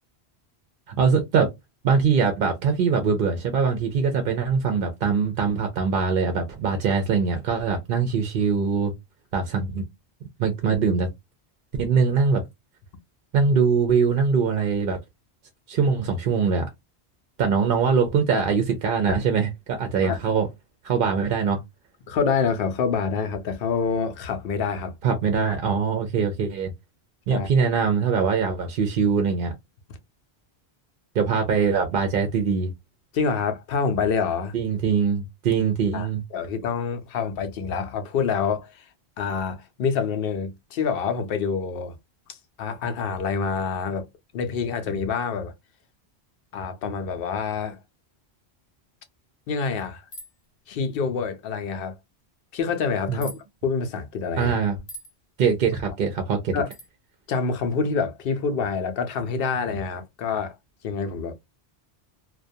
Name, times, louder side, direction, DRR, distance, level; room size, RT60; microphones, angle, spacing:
voice 1, 0.9-1.5 1.8-8.9 9.3-9.8 10.4-11.1 11.8-12.4 13.3-15.0 15.7-16.7 17.4-20.5 20.8-21.6 25.0-26.7 27.3-29.5 31.1-32.7 34.5-36.2 53.1-53.2 54.4-54.8 55.4-56.6, right 5 dB, 60° right, 0.6 m, -22 dB
voice 2, 22.1-24.9 27.3-27.5 33.1-34.5 35.9-38.9 39.2-42.0 42.3-44.1 44.3-45.5 46.5-47.8 49.5-50.1 50.7-52.0 52.5-54.5 56.5-56.7 57.3-60.6 60.8-61.3, left 5 dB, 65° left, 0.7 m, -27 dB
sound 1, 50.1-50.4 53.2-53.4 54.9-55.1 56.7-56.9, equal, 30° left, 0.8 m, -40 dB
2.3 x 2.2 x 2.6 m
omnidirectional pair, 1.1 m